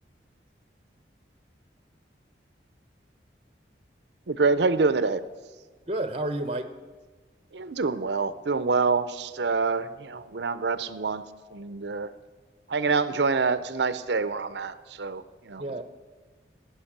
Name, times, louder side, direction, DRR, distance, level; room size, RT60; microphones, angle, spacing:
voice 1, 4.3-5.2 7.5-11.2 11.5-12.1 12.7-15.6, right 4 dB, 75° right, 13 dB, 0.7 m, -26 dB
voice 2, 5.9-6.7 15.6-15.8, right 1 dB, 30° right, 10 dB, 0.8 m, -30 dB
18.0 x 9.2 x 7.3 m, 1.4 s
head